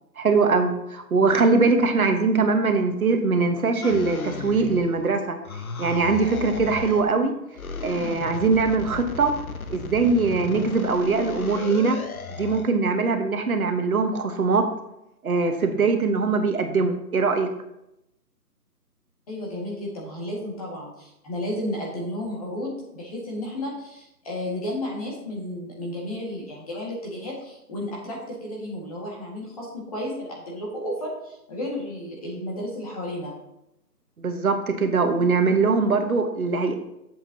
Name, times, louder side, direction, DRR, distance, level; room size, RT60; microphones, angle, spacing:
voice 1, 0.2-5.4 5.8-7.4 7.8-9.3 9.7-12.0 12.4-14.7 15.2-17.5 34.2-36.7, right 4 dB, 60° right, 6 dB, 1.2 m, -22 dB
sound 1, 3.8-5.1 5.5-7.1 7.5-12.7, left 5 dB, 60° left, 0.9 m, -35 dB
voice 2, 19.3-33.3, left 1 dB, 20° left, -3 dB, 1.7 m, -33 dB
9.3 x 7.5 x 2.8 m, 0.84 s
hypercardioid pair, 165°, 49 cm